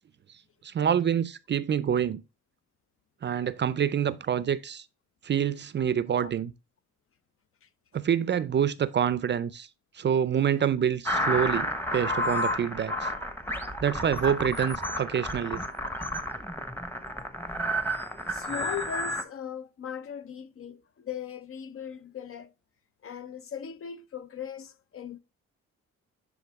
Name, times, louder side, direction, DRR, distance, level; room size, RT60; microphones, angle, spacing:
voice 1, 0.6-2.2 3.2-4.8 5.2-6.5 7.9-9.7 10.0-13.1 13.8-15.6, right 8 dB, 35° right, 0.5 m, -27 dB
sound 1, 11.0-19.2, equal, 5° left, 1.1 m, -31 dB
voice 2, 18.3-22.5 23.0-25.2, left 8 dB, 45° left, 0.7 m, -39 dB
11.0 x 3.7 x 3.5 m
cardioid pair, 90°, 30 cm